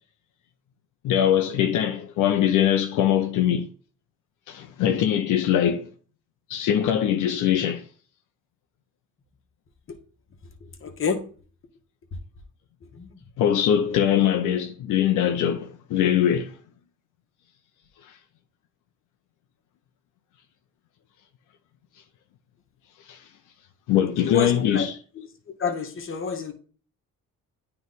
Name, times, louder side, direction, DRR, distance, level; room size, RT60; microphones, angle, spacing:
voice 1, 1.0-3.7 4.5-5.9 6.5-7.8 13.4-16.6 23.1-23.2 23.9-25.0, left 10 dB, 85° left, 0.6 m, -22 dB
voice 2, 10.8-11.2 13.0-13.1 24.2-24.9 25.6-26.5, left 5 dB, 45° left, 1.3 m, -28 dB
9.2 x 3.3 x 4.0 m
cardioid pair, 90°, 30 cm